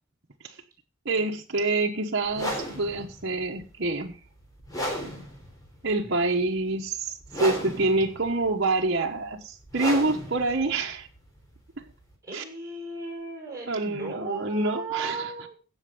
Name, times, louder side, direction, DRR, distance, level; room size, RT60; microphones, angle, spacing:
voice 1, 1.0-4.2 5.8-11.1 12.3-12.4 13.7-15.3, right 2 dB, 60° right, -1 dB, 1.2 m, -27 dB
sound 1, 2.3-12.1, equal, 20° left, 3.8 m, -35 dB
voice 2, 6.0-6.3 12.2-15.5, right 4 dB, 15° right, -2 dB, 6.1 m, -36 dB
16.5 x 6.5 x 5.2 m, 0.35 s
head